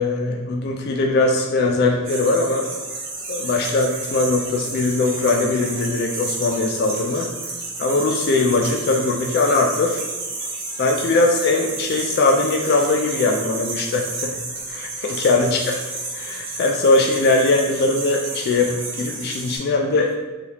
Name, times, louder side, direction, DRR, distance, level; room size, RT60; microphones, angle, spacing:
voice 1, 0.0-2.7 3.3-7.3 7.8-10.0 10.8-14.4 14.7-15.7 16.1-20.1, left 3 dB, 50° left, 1 dB, 0.3 m, -20 dB
sound 1, 2.0-19.6, right 3 dB, 65° right, 0.9 m, -31 dB
3.3 x 2.3 x 2.8 m, 1.2 s
head